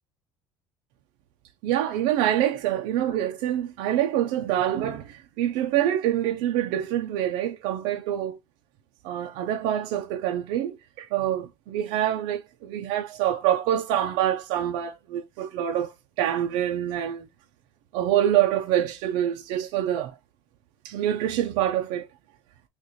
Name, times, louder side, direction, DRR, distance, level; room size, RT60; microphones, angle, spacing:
voice 1, 1.6-8.4 9.0-17.3 17.9-20.2 20.8-22.1, right 11 dB, 90° right, 0.6 m, -26 dB
6.4 x 2.6 x 2.9 m
cardioid pair, 170°, 8 cm